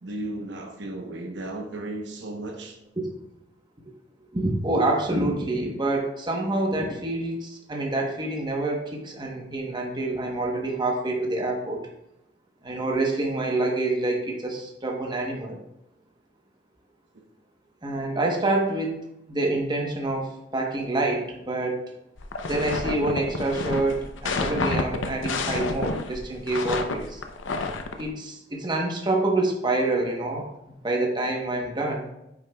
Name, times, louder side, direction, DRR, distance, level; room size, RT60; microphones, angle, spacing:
voice 1, 0.0-2.8 17.1-17.2, right 2 dB, 70° right, 3 dB, 0.9 m, -35 dB
voice 2, 4.3-11.8 12.6-15.6 17.8-19.0 19.3-21.9 22.5-27.2 28.0-30.5 30.8-32.1, right 2 dB, 25° right, 0 dB, 1.0 m, -27 dB
sound 1, 22.2-28.0, left 3 dB, 85° left, 0.6 m, -29 dB
9.0 x 6.5 x 2.3 m, 0.86 s
head